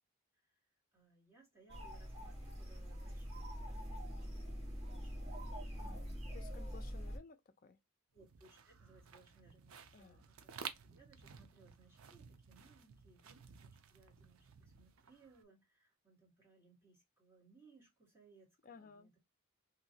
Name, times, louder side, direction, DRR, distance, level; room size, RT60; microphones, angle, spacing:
voice 1, 0.9-5.4 8.1-18.5 18.8-19.2, right 3 dB, 10° right, 1.7 m, -67 dB
sound 1, 1.7-7.2, equal, 30° right, 1.3 m, -44 dB
voice 2, 5.8-7.8 9.9-10.3 18.6-19.1, left 5 dB, 40° left, 0.4 m, -58 dB
sound 2, 8.2-15.4, right 7 dB, 80° right, 0.5 m, -54 dB
2.9 x 2.7 x 2.7 m
head